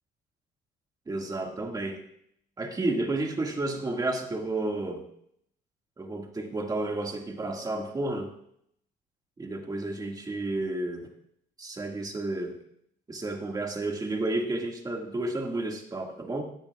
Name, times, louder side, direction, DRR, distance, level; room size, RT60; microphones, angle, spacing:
voice 1, 1.1-2.0 2.6-5.0 6.0-8.3 9.4-11.1 11.6-12.6 13.1-16.4, right 2 dB, 20° right, 2 dB, 1.9 m, -31 dB
17.0 x 12.0 x 2.4 m, 0.71 s
cardioid pair, 110°, 17 cm